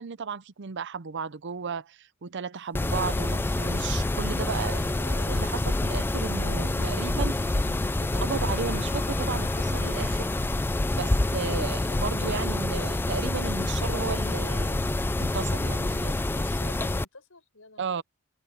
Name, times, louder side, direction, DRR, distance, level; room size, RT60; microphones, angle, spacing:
voice 1, 0.0-7.7 8.2-10.3 10.9-16.2 17.8-18.0, right 5 dB, 55° right, 0.6 m, -34 dB
Mechanisms, 2.7-17.0, left 2 dB, 10° left, 0.3 m, -27 dB
sound 1, 2.8-11.7, right 1 dB, 80° right, 2.5 m, -47 dB
Wind instrument woodwind instrument, 7.5-11.5, left 6 dB, 40° left, 5.6 m, -52 dB
voice 2, 16.0-18.0, left 3 dB, 75° left, 5.4 m, -51 dB
head